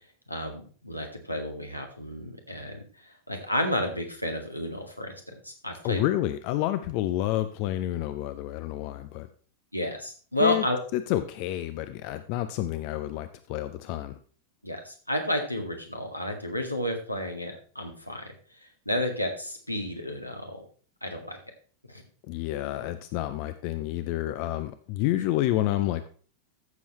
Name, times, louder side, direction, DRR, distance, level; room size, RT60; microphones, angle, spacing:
voice 1, 0.3-6.0 9.7-10.8 14.6-18.3 18.6-20.7 21.0-21.4 21.9-22.0, left 1 dB, 90° left, 2 dB, 2.0 m, -31 dB
voice 2, 5.8-9.3 10.4-10.7 10.9-14.2 22.2-26.1, left 14 dB, 45° left, 11 dB, 0.6 m, -29 dB
14.0 x 7.1 x 3.1 m, 0.42 s
figure-of-eight pair, 90°, 0 cm